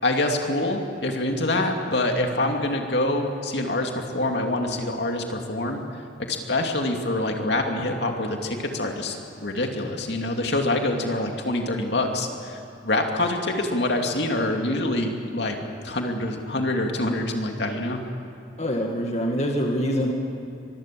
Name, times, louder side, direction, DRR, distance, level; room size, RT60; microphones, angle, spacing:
voice 1, 0.0-5.8 6.3-9.2 9.4-15.6 15.8-18.0, left 1 dB, 65° left, 3 dB, 2.6 m, -25 dB
voice 2, 18.6-20.1, equal, 40° left, 1 dB, 1.9 m, -25 dB
24.5 x 21.5 x 7.6 m, 2.7 s
head